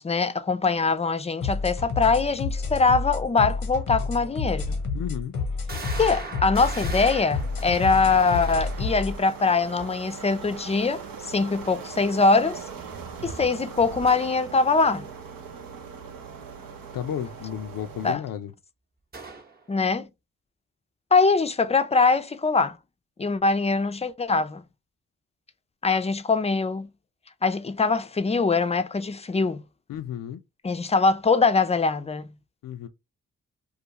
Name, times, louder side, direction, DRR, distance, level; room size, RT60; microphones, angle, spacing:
voice 1, 0.0-4.7 6.0-12.6 13.2-15.0 18.0-18.2 19.7-20.1 21.1-22.8 23.2-24.6 25.8-26.9 27.4-29.6 30.6-32.3, left 4 dB, 20° left, 0.4 m, -23 dB
sound 1, 1.4-9.2, left 4 dB, 90° left, 0.9 m, -29 dB
sound 2, 4.1-4.2 4.8-4.9 5.7-9.1 14.1-14.5 19.1-19.6, right 3 dB, 30° right, 0.8 m, -39 dB
voice 2, 4.9-5.3 16.9-18.5 29.9-30.4 32.6-32.9, left 10 dB, 75° left, 0.5 m, -32 dB
sound 3, 7.1-18.2, right 6 dB, 80° right, 0.7 m, -40 dB
2.4 x 2.3 x 2.9 m
supercardioid pair, 45°, 33 cm